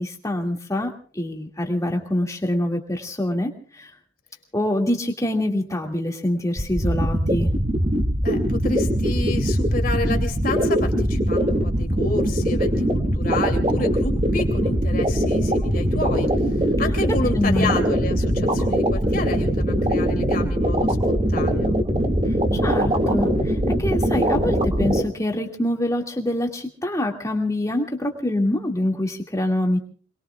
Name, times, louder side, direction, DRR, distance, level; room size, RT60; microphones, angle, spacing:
voice 1, 0.0-3.9 4.5-7.5 16.8-16.9 17.3-17.7 22.5-29.8, left 1 dB, 15° left, 2 dB, 2.1 m, -25 dB
sound 1, 6.6-25.0, equal, 30° right, 2.0 m, -21 dB
voice 2, 8.2-16.3 16.8-21.8, left 2 dB, 45° left, 4 dB, 2.8 m, -30 dB
28.0 x 21.0 x 2.4 m, 0.44 s
head